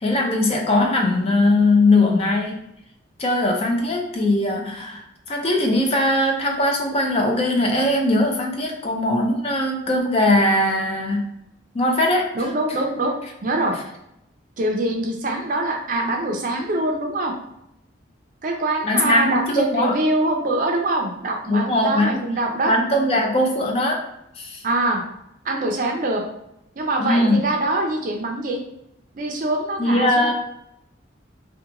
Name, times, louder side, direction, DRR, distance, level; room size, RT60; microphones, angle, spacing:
voice 1, 0.0-2.7 3.2-11.3 11.7-12.5 18.8-20.0 21.5-22.2 22.7-24.0 24.4-24.6 27.0-27.5 29.8-30.3, left 1 dB, 30° left, 2 dB, 0.4 m, -20 dB
voice 2, 12.3-13.1 13.4-13.7 14.6-17.3 18.4-22.7 24.6-25.0 25.4-26.2 26.8-28.6 29.1-30.3, right 2 dB, 45° right, 2 dB, 0.4 m, -24 dB
2.8 x 2.2 x 2.4 m, 0.83 s
head